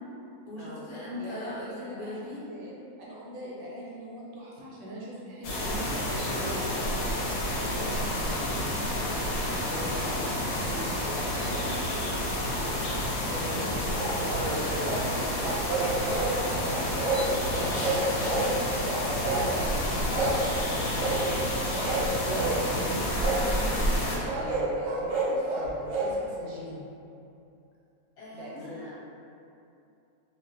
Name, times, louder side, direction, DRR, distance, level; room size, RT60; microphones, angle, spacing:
voice 1, 0.4-2.4 8.7-9.0 9.2-9.6 28.2-29.0, left 2 dB, 50° left, -10 dB, 1.0 m, -40 dB
voice 2, 1.2-2.1 2.5-6.7 7.6-8.4 9.6-10.9 11.4-11.9 12.8-16.1 16.4-20.4 20.6-23.0 24.2-26.9 28.3-28.8, equal, 80° right, -5 dB, 1.0 m, -41 dB
sound 1, 5.4-24.2, left 1 dB, 75° left, 1.0 m, -30 dB
sound 2, 13.9-15.0 15.4-16.3 16.6-17.2 17.5-18.5 18.8-19.7 20.1-20.4 21.0-21.2 21.7-22.5 23.2-23.4 24.2-26.1, right 3 dB, 55° right, 0.5 m, -30 dB
2.6 x 2.1 x 2.5 m, 2.7 s
omnidirectional pair, 1.5 m